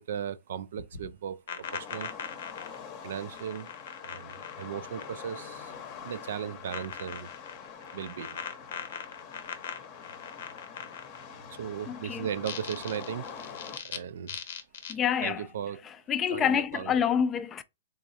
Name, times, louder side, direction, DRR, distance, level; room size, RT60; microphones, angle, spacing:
voice 1, 0.0-2.1 3.0-3.7 4.0-5.7 6.0-7.3 7.9-8.4 11.5-13.3 13.8-14.4 15.2-15.8 16.3-16.9, right 9 dB, 65° right, 0.3 m, -37 dB
sound 1, 0.8-5.4 5.7-6.3 6.7-11.4 12.3-14.0 14.3-14.9, left 7 dB, 70° left, 0.7 m, -41 dB
sound 2, 1.6-13.8, left 7 dB, 40° left, 0.7 m, -45 dB
voice 2, 11.9-12.3 14.9-15.5 16.1-17.6, left 8 dB, 20° left, 0.4 m, -27 dB
3.5 x 3.0 x 2.7 m
hypercardioid pair, 135°, 0 cm